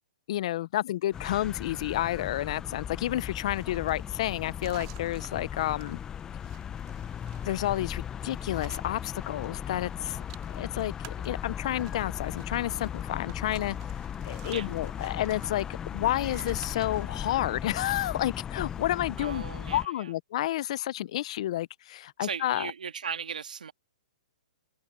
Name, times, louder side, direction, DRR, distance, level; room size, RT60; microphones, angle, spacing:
voice 1, 0.3-6.0 7.4-10.2 10.6-13.8 14.2-19.4 19.7-22.7, left 14 dB, 50° left, 0.7 m, -30 dB
sound 1, 1.1-19.9, left 8 dB, 15° left, 0.7 m, -37 dB
sound 2, 3.3-9.5 9.7-17.2, right 21 dB, 40° right, 2.3 m, -53 dB
voice 2, 19.2-20.1 22.2-23.7, right 6 dB, 90° right, 1.9 m, -37 dB
hypercardioid pair, 145°, 4 cm